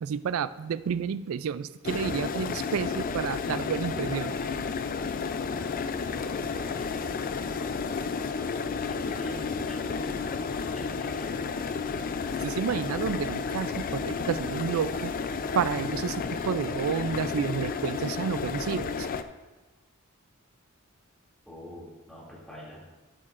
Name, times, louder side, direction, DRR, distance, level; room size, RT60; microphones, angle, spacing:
voice 1, 0.0-4.4 12.4-15.1 15.5-19.1, right 7 dB, 70° right, 15 dB, 0.3 m, -30 dB
sound 1, 1.8-19.2, left 5 dB, 40° left, 0.4 m, -32 dB
voice 2, 6.1-7.2 8.9-11.9 21.4-22.8, left 1 dB, ahead, -7 dB, 2.5 m, -46 dB
13.0 x 8.5 x 2.5 m, 1.2 s
head